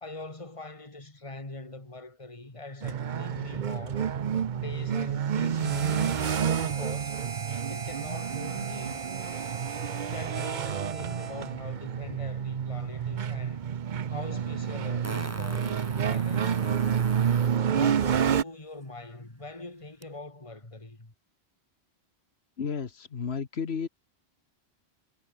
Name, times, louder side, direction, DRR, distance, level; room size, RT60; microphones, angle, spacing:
voice 1, 0.0-4.1 4.5-7.2 7.7-9.0 10.1-13.6 14.1-16.6 17.7-21.1, left 2 dB, 30° left, 2.9 m, -42 dB
sound 1, 2.8-18.4, right 8 dB, 50° right, 0.8 m, -29 dB
Harmonica, 5.6-11.6, right 5 dB, 70° right, 2.0 m, -39 dB
Fart, 13.9-14.0 15.0-17.6 20.0-20.1, right 1 dB, 15° right, 1.4 m, -42 dB
voice 2, 22.6-23.9, left 6 dB, 70° left, 1.6 m, -32 dB
omnidirectional pair, 1.1 m